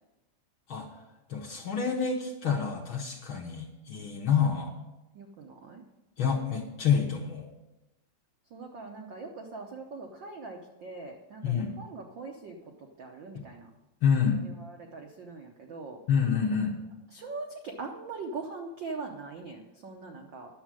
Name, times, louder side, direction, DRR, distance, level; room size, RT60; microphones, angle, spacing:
voice 1, 1.3-4.7 6.2-7.5 11.4-11.7 13.3-13.4 14.0-14.4 16.1-16.7, left 7 dB, 60° left, 0 dB, 1.4 m, -27 dB
voice 2, 5.1-5.8 8.5-12.6 13.0-13.7 14.4-16.0 17.1-20.6, right 3 dB, 80° right, 2 dB, 1.0 m, -41 dB
11.0 x 7.3 x 7.5 m, 1.0 s
omnidirectional pair, 3.5 m